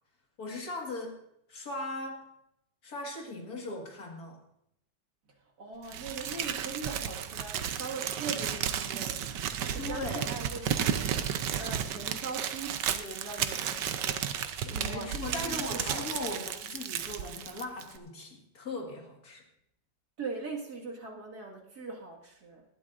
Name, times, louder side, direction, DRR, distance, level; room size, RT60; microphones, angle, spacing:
voice 1, 0.4-1.2 1.5-2.3 2.8-4.4 9.8-10.3 14.6-19.4, left 2 dB, 55° left, 1 dB, 2.4 m, -39 dB
voice 2, 5.4-11.1 11.5-14.3 14.6-16.5 20.2-22.6, right 4 dB, 60° right, -1 dB, 2.5 m, -41 dB
Crumpling crinkling, 5.9-18.0, right 9 dB, 75° right, 1.4 m, -33 dB
19.0 x 12.5 x 2.6 m, 0.76 s
omnidirectional pair, 1.9 m